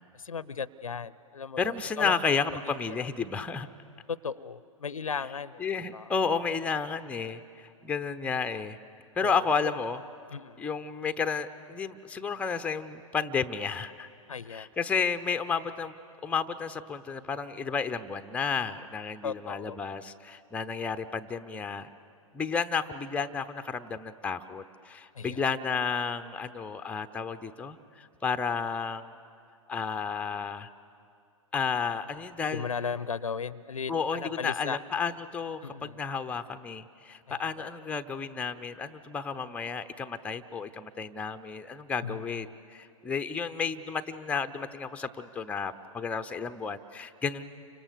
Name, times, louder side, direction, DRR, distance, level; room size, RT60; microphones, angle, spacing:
voice 1, 0.1-2.2 3.0-3.1 4.1-5.7 5.9-6.1 9.2-9.4 9.6-9.7 10.3-10.6 14.3-14.7 19.2-19.8 25.1-25.4 32.5-34.8 35.6-36.0 37.3-37.7 42.0-42.6, left 6 dB, 75° left, 19 dB, 0.7 m, -36 dB
voice 2, 1.6-3.7 5.6-8.8 9.2-10.0 10.6-14.1 14.5-15.9 16.2-21.9 22.3-29.2 29.7-30.7 31.5-32.7 33.9-47.4, left 5 dB, 5° left, 8 dB, 0.7 m, -32 dB
30.0 x 26.0 x 6.9 m, 2.4 s
figure-of-eight pair, 110°, 18 cm